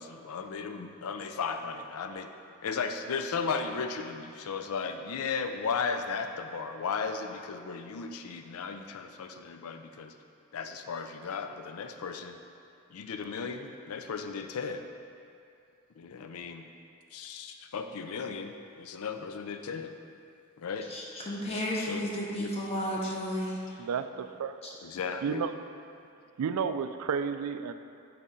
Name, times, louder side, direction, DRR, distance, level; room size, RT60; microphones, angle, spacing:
voice 1, 0.0-2.3 2.6-10.1 10.5-12.4 12.9-14.9 16.0-16.7 17.1-19.9 20.6-20.9 21.5-22.0 22.4-22.5 22.9-23.1 24.8-25.4, left 5 dB, 70° left, 6 dB, 0.4 m, -35 dB
voice 2, 20.9-23.8 24.6-24.7, equal, 30° left, -4 dB, 1.0 m, -33 dB
voice 3, 23.8-24.6 25.2-25.5 26.4-27.7, right 6 dB, 80° right, 10 dB, 0.3 m, -31 dB
8.4 x 4.1 x 3.7 m, 2.5 s
head